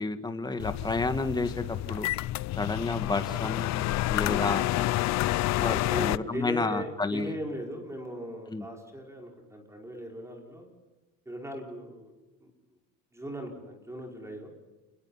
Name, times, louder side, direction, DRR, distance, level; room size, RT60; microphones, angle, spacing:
voice 1, 0.0-2.1 2.6-4.9 5.6-7.3 8.5-8.7, left 3 dB, 15° left, 8 dB, 1.9 m, -31 dB
sound 1, 0.6-6.2, left 17 dB, 55° left, 0.7 m, -29 dB
voice 2, 5.7-10.7 11.3-12.1 12.4-12.5 13.1-14.5, equal, 10° right, 2 dB, 5.2 m, -38 dB
30.0 x 21.5 x 5.8 m, 1.1 s
cardioid pair, 140°, 32 cm